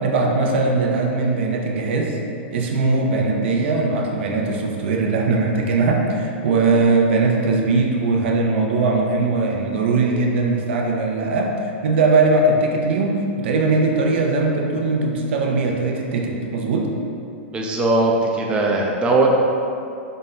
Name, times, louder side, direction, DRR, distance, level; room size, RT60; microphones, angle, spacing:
voice 1, 0.0-2.2 2.5-11.5 11.8-16.9, right 3 dB, 70° right, 0 dB, 0.5 m, -20 dB
voice 2, 17.5-19.3, right 2 dB, 15° right, -1 dB, 0.4 m, -19 dB
3.8 x 2.2 x 3.7 m, 2.6 s
hypercardioid pair, 130°, 6 cm